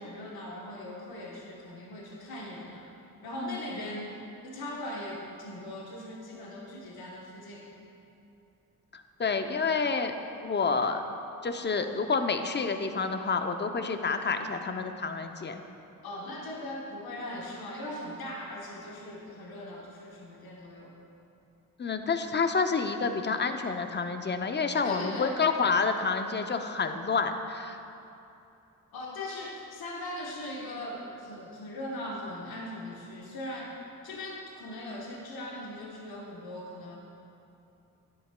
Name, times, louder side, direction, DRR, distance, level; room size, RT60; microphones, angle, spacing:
voice 1, 0.0-2.9 3.2-4.2 4.4-7.7 16.0-20.9 24.8-25.4 28.9-33.7 34.0-37.0, left 1 dB, 75° left, -3 dB, 1.1 m, -40 dB
voice 2, 3.4-3.8 8.9-10.1 10.4-11.0 11.4-15.6 21.8-27.8, left 4 dB, 30° left, 7 dB, 0.6 m, -29 dB
9.8 x 8.0 x 2.2 m, 2.8 s
cardioid pair, 50°, 37 cm